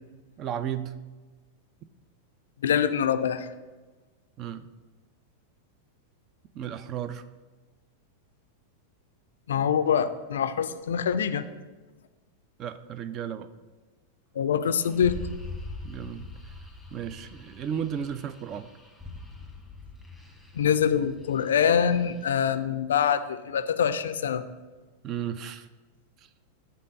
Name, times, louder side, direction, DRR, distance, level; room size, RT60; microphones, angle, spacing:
voice 1, 0.4-0.9 4.4-4.7 6.5-7.2 12.6-13.5 15.8-16.3 16.9-18.7 25.0-25.7, right 9 dB, 35° right, 13 dB, 0.4 m, -34 dB
voice 2, 2.6-3.5 9.5-11.4 14.4-15.2 20.5-24.4, left 8 dB, 65° left, 12 dB, 0.3 m, -24 dB
sound 1, 14.6-22.3, left 2 dB, 5° right, 1.2 m, -43 dB
7.4 x 3.8 x 5.4 m, 1.3 s
figure-of-eight pair, 90°, 0 cm